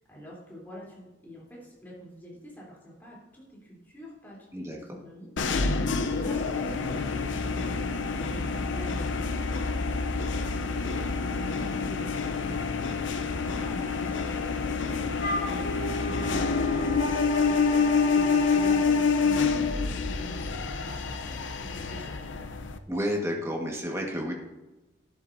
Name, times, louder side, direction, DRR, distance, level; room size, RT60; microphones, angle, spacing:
voice 1, 0.1-5.3 6.1-22.2, equal, 10° left, -5 dB, 3.4 m, -45 dB
voice 2, 4.5-5.0 22.9-24.3, equal, 15° right, 0 dB, 1.5 m, -31 dB
sound 1, 5.4-22.8, left 4 dB, 75° left, 0.7 m, -27 dB
Wind instrument woodwind instrument, 15.2-18.8, equal, 50° left, 3.4 m, -34 dB
12.0 x 10.5 x 2.7 m, 1.1 s
head